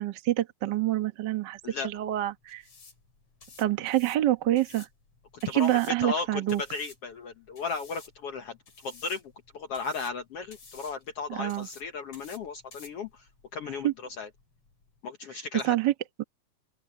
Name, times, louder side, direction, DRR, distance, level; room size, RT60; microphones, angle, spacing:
voice 1, 0.0-2.6 3.6-4.9 5.5-6.6 11.3-11.7 13.8-13.9 15.6-15.9 16.2-16.3, right 14 dB, 70° right, 1.0 m, -27 dB
sound 1, 1.5-15.0, left 4 dB, 45° left, 5.6 m, -54 dB
voice 2, 5.5-8.6 8.8-9.2 9.5-13.3 13.5-13.9 14.2-14.3 15.0-15.8, left 4 dB, 65° left, 1.5 m, -35 dB
open air
omnidirectional pair, 4.0 m